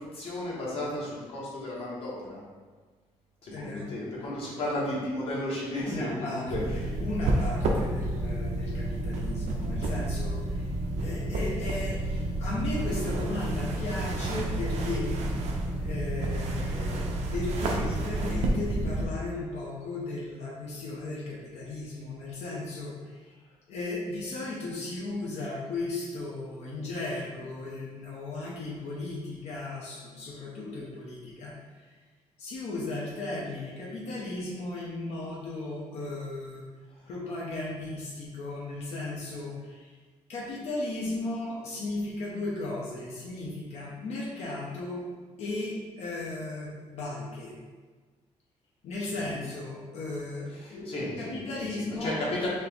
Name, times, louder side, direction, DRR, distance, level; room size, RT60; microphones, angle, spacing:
voice 1, 0.1-2.4 3.4-7.0 49.1-49.4 50.6-52.5, left 1 dB, 55° left, -5 dB, 1.3 m, -34 dB
voice 2, 3.5-4.1 5.7-10.7 11.0-15.2 15.8-23.2 23.7-31.5 32.4-36.6 37.1-39.9 40.3-45.1 45.4-47.6 48.8-52.2, left 2 dB, 70° left, -4 dB, 0.8 m, -36 dB
sound 1, 6.5-19.1, right 1 dB, 70° right, 0.6 m, -30 dB
4.3 x 2.9 x 3.5 m, 1.4 s
cardioid pair, 160°, 12 cm